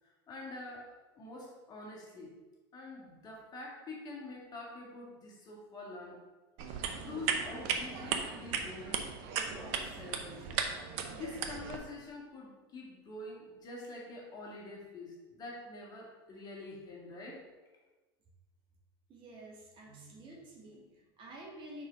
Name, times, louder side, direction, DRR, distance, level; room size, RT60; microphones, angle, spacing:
voice 1, 0.0-2.3 2.7-6.2 6.7-17.4 19.9-20.4, left 2 dB, 30° left, -2 dB, 2.1 m, -46 dB
sound 1, 6.6-11.8, right 6 dB, 55° right, 0.8 m, -36 dB
voice 2, 19.1-21.9, right 1 dB, 40° right, -1 dB, 1.7 m, -50 dB
4.7 x 4.6 x 5.7 m, 1.2 s
hypercardioid pair, 105°, 13 cm